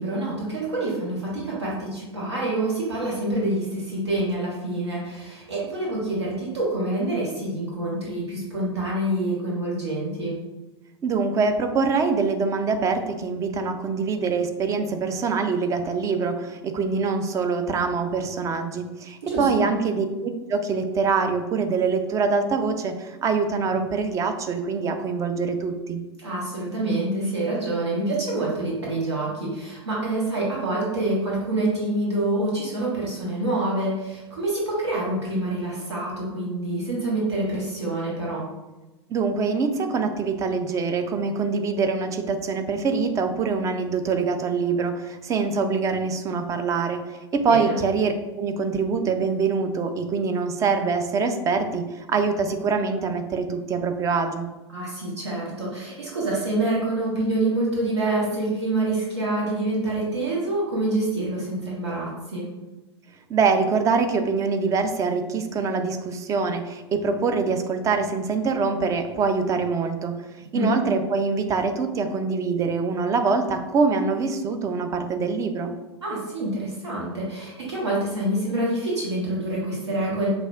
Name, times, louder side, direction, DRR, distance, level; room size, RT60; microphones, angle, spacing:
voice 1, 0.0-10.4 19.2-19.7 26.2-38.4 47.5-47.7 54.7-62.5 70.5-70.7 76.0-80.3, right 2 dB, 70° right, -5 dB, 1.4 m, -26 dB
voice 2, 11.0-26.0 39.1-54.5 63.3-70.1 70.5-75.7, right 4 dB, 20° right, 7 dB, 0.4 m, -24 dB
5.9 x 2.4 x 2.3 m, 1.1 s
figure-of-eight pair, 90°, 15 cm